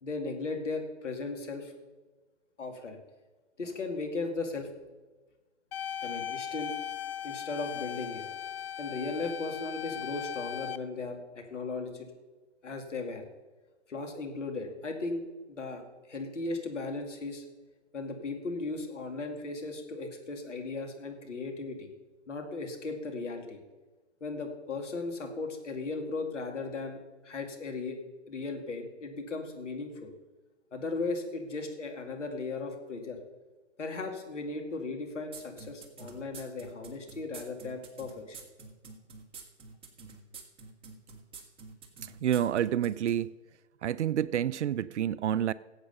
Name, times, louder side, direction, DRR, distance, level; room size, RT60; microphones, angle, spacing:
voice 1, 0.0-1.7 2.6-3.0 3.6-4.7 6.0-6.8 7.2-8.2 8.8-12.1 12.6-13.2 13.9-15.8 16.1-17.4 17.9-21.9 22.3-23.6 24.2-28.0 28.3-30.1 30.7-33.2 33.8-38.4, left 3 dB, 85° left, 2.5 m, -37 dB
sound 1, 5.7-10.8, left 9 dB, 55° left, 0.8 m, -38 dB
sound 2, 35.3-43.2, right 4 dB, 15° right, 1.6 m, -47 dB
voice 2, 42.0-43.3 43.8-45.5, right 10 dB, 75° right, 0.5 m, -29 dB
15.0 x 8.1 x 5.4 m
hypercardioid pair, 135°, 35 cm